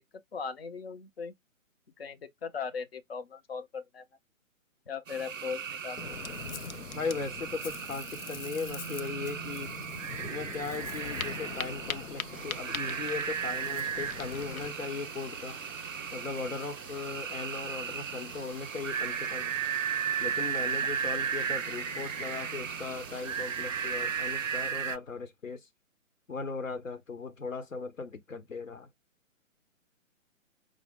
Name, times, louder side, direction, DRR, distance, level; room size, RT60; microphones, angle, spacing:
voice 1, 0.3-1.3 2.0-4.0 4.9-6.2, left 6 dB, 45° left, 0.7 m, -38 dB
sound 1, 5.1-25.0, right 7 dB, 70° right, 0.5 m, -36 dB
Ocean, 6.0-14.7, left 6 dB, 90° left, 0.5 m, -42 dB
voice 2, 6.9-9.7 10.3-15.6 16.1-19.5 20.2-25.7 26.3-28.9, left 4 dB, 70° left, 0.9 m, -38 dB
sound 2, 12.3-24.7, right 2 dB, 20° right, 0.5 m, -49 dB
5.2 x 2.0 x 3.5 m
figure-of-eight pair, 135°, 41 cm